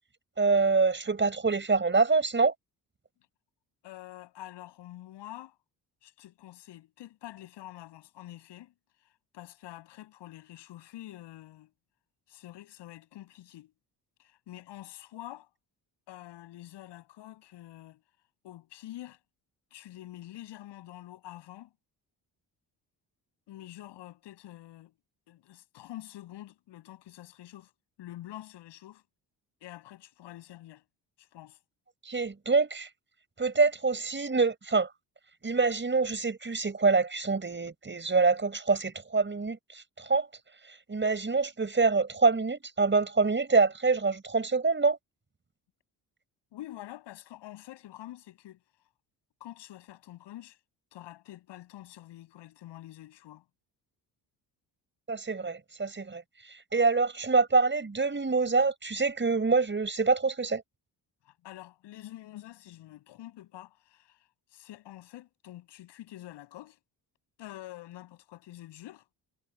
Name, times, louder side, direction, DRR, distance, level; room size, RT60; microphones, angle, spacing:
voice 1, 0.4-2.5 32.1-32.9 33.4-34.9 35.4-40.3 40.9-45.0 55.1-56.2 56.7-60.6, right 4 dB, 25° right, 5.5 m, -26 dB
voice 2, 3.8-5.5 6.0-8.7 9.3-11.7 12.3-13.7 14.2-15.5 16.1-18.0 18.4-19.2 19.7-21.7 23.5-24.9 25.3-27.7 28.0-29.0 29.6-30.8 31.2-31.6 46.5-48.6 49.4-50.6 50.9-53.4 61.2-64.2 64.5-66.8 67.4-69.0, left 14 dB, 85° left, 7.7 m, -47 dB
cardioid pair, 80°, 41 cm